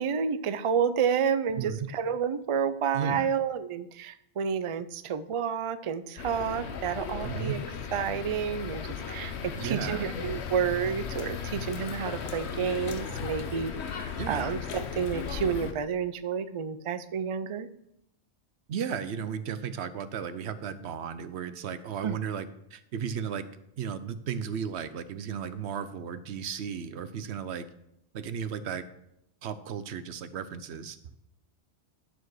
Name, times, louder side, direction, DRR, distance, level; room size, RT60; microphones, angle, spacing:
voice 1, 0.0-7.6 7.9-17.7 22.0-22.2, right 7 dB, 45° right, 11 dB, 0.4 m, -30 dB
voice 2, 1.6-1.9 2.9-3.3 7.2-7.6 9.5-10.1 14.2-14.6 18.7-23.5 23.8-27.7 28.1-28.8 29.4-31.0, right 7 dB, 75° right, 12 dB, 1.0 m, -35 dB
sound 1, 6.2-15.7, left 6 dB, 75° left, 1.1 m, -36 dB
11.5 x 4.8 x 6.2 m, 0.80 s
omnidirectional pair, 1.1 m